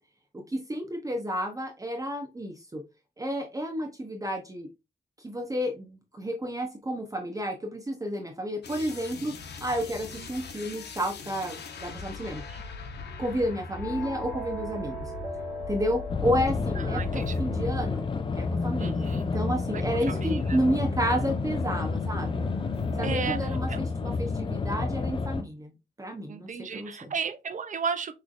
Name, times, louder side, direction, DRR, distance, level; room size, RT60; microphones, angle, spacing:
voice 1, 0.3-2.8 3.2-4.7 5.2-9.3 9.6-12.4 13.2-15.1 15.7-18.1 18.3-22.4 23.0-25.7 26.0-27.1, equal, 20° right, 0.8 m, -31 dB
sound 1, 8.6-18.2 18.4-23.5, left 4 dB, 85° left, 0.9 m, -39 dB
sound 2, 13.8-20.3, right 1 dB, ahead, 2.1 m, -41 dB
sound 3, 16.1-25.4, left 4 dB, 30° left, 0.4 m, -30 dB
voice 2, 16.8-17.4 18.8-19.3 19.7-20.6 23.0-23.4 23.7-23.8 26.3-28.2, right 6 dB, 50° right, 0.5 m, -34 dB
6.1 x 3.2 x 2.5 m
wide cardioid pair, 135°, 17 cm